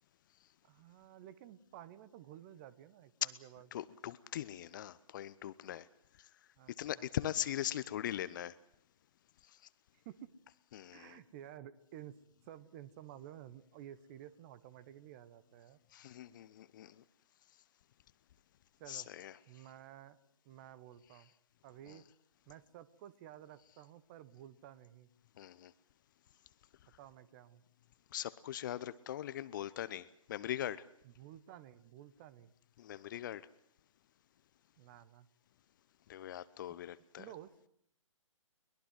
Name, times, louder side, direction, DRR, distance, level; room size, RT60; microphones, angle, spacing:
voice 1, 0.6-3.7 6.6-7.1 10.0-10.3 10.9-15.8 18.8-19.1 19.5-20.2 20.4-21.3 21.6-22.0 22.5-25.1 27.0-27.6 31.0-32.5 34.8-35.3 37.2-37.7, right 11 dB, 30° right, 17 dB, 1.3 m, -53 dB
voice 2, 3.7-5.9 6.8-8.6 10.7-11.2 15.9-17.0 18.9-19.4 21.9-22.0 25.4-25.7 28.1-30.8 32.8-33.5 36.1-37.3, left 12 dB, 35° left, 17 dB, 0.9 m, -41 dB
23.0 x 21.0 x 7.6 m, 0.68 s
figure-of-eight pair, 135°, 17 cm